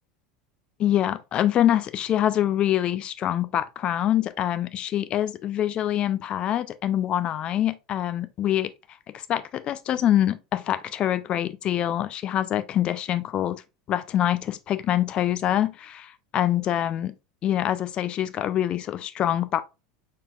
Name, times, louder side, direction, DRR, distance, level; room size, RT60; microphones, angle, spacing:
voice 1, 0.8-8.7 9.3-13.6 13.9-17.1 17.4-19.6, left 11 dB, 40° left, 0.4 m, -25 dB
4.1 x 3.7 x 2.4 m
hypercardioid pair, 80°, 3 cm